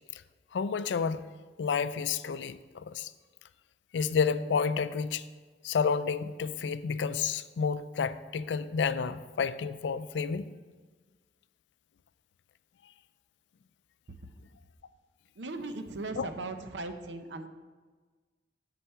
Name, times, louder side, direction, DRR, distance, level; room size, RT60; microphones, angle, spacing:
voice 1, 0.5-1.3 1.6-3.1 3.9-5.2 5.6-10.5 16.2-16.3, left 6 dB, 85° left, 14 dB, 0.4 m, -30 dB
voice 2, 15.4-17.5, right 2 dB, 90° right, 8 dB, 0.7 m, -38 dB
8.0 x 6.8 x 4.4 m, 1.4 s
head